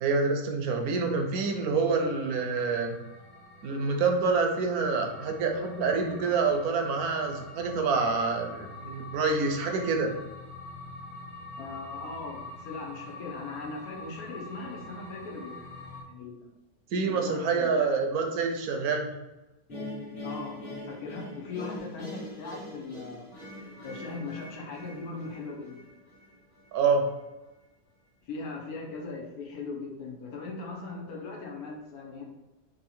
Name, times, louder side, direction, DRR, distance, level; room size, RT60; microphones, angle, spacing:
voice 1, 0.0-3.0 3.6-10.1 16.9-19.1 26.7-27.1, right 4 dB, 75° right, 4 dB, 1.2 m, -27 dB
sound 1, 0.8-16.0, left 2 dB, 55° left, 1.3 m, -45 dB
voice 2, 11.6-15.7 16.1-16.5 17.1-17.9 20.2-23.3 23.8-25.9 28.3-32.2, left 3 dB, 75° left, -1 dB, 1.4 m, -39 dB
sound 2, 19.7-26.8, left 1 dB, 35° left, 1.3 m, -42 dB
3.7 x 2.8 x 4.2 m, 1.0 s
omnidirectional pair, 1.6 m